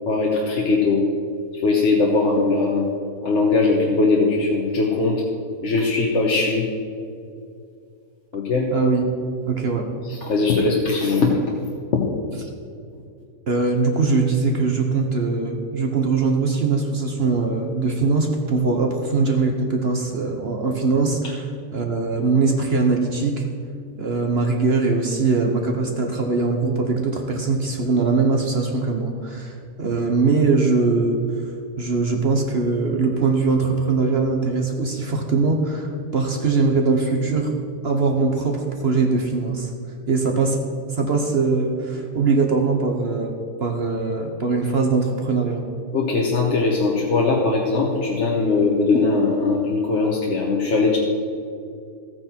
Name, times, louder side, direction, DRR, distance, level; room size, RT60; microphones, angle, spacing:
voice 1, 0.1-1.0 1.5-2.9 3.2-5.2 5.6-6.6 8.3-8.7 10.2-11.3 11.9-12.0 45.9-51.0, left 3 dB, 50° left, -2 dB, 1.4 m, -20 dB
voice 2, 8.7-9.1 9.5-9.9 10.6-10.7 13.5-23.5 24.0-37.5 37.8-39.7 40.1-40.6 40.9-43.3 43.6-45.6, right 4 dB, 45° right, 3 dB, 1.1 m, -21 dB
14.5 x 9.1 x 4.4 m, 2.4 s
omnidirectional pair, 1.6 m